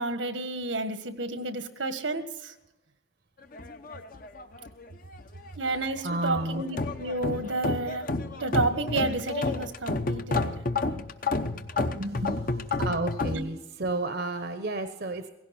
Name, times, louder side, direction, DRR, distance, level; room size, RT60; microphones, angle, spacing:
voice 1, 0.0-2.5 5.6-10.5 10.9-11.0 11.8-12.4 13.3-13.4, right 2 dB, 85° right, 9 dB, 1.6 m, -31 dB
sound 1, 3.5-4.9 5.1-5.9 6.3-13.4, left 3 dB, 45° left, 0.8 m, -31 dB
voice 2, 6.0-6.6 12.8-15.2, right 2 dB, 55° right, 8 dB, 0.9 m, -31 dB
17.0 x 16.0 x 4.3 m, 0.99 s
head